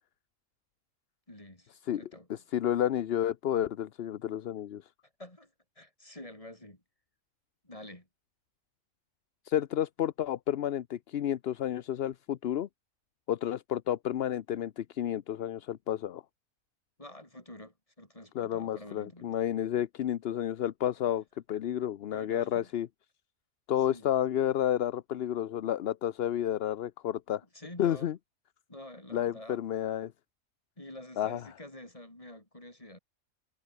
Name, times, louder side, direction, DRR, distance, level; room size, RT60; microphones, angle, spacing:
voice 1, 1.3-2.3 5.2-5.5 5.8-6.8 7.6-8.1 17.0-19.3 22.1-22.7 23.9-24.1 27.5-28.1 28.7-29.6 30.8-33.0, left 1 dB, 25° left, 4.9 m, -48 dB
voice 2, 2.3-4.8 9.5-12.7 13.3-16.2 18.3-22.9 23.7-27.4 27.8-28.2 29.1-30.1 31.2-31.4, left 11 dB, 55° left, 0.8 m, -31 dB
omnidirectional pair, 1.4 m